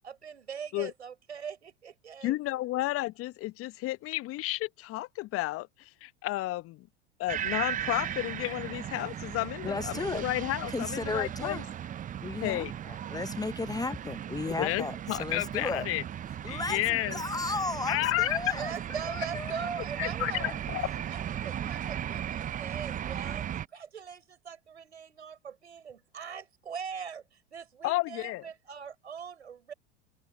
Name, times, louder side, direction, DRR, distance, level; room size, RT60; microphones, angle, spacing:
voice 1, 0.0-2.4 18.5-20.5 21.1-29.7, right 7 dB, 85° right, 6.8 m, -41 dB
voice 2, 2.2-6.9 7.2-11.6 12.4-12.7 14.6-16.0 16.5-17.2 17.9-18.6 20.0-20.8 27.8-28.5, left 18 dB, 45° left, 1.2 m, -32 dB
sound 1, 7.3-23.7, right 10 dB, 25° right, 0.7 m, -37 dB
voice 3, 9.6-10.2 10.7-11.7 12.2-15.9 16.4-18.7 19.1-19.7 20.4-20.6, left 3 dB, 10° left, 0.9 m, -35 dB
open air
hypercardioid pair, 85°, 33 cm